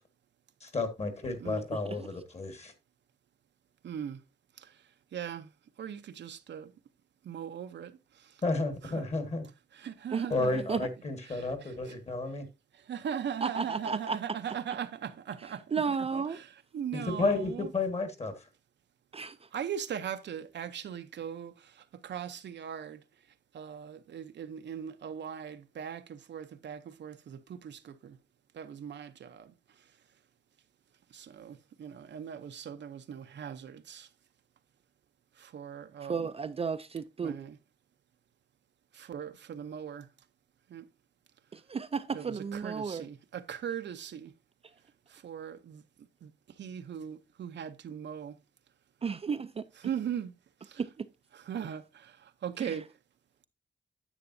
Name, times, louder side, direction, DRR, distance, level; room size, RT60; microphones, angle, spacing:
voice 1, 0.6-2.7 8.4-9.4 10.3-12.4 16.9-18.3, left 3 dB, 40° left, 1.6 m, -32 dB
voice 2, 3.8-4.2 5.1-5.5 5.8-6.7 7.2-7.9 8.8-9.0 9.7-10.7 11.3-11.9 12.9-16.5 16.7-17.7 19.5-21.5 22.0-23.0 23.5-28.1 28.6-29.5 31.1-34.1 35.4-36.3 37.2-37.6 39.0-40.1 40.7-40.9 42.1-44.3 45.1-45.8 46.2-46.3 46.6-48.3 49.8-50.3 50.7-50.8 51.3-52.1 52.4-52.9, right 8 dB, 90° right, 0.7 m, -39 dB
voice 3, 13.4-14.2 15.4-16.4 19.1-19.5 36.0-37.4 41.5-43.1 49.0-49.6 50.8-51.1 52.6-52.8, right 5 dB, 35° right, 0.4 m, -33 dB
9.9 x 8.0 x 2.6 m
wide cardioid pair, 135°, 18 cm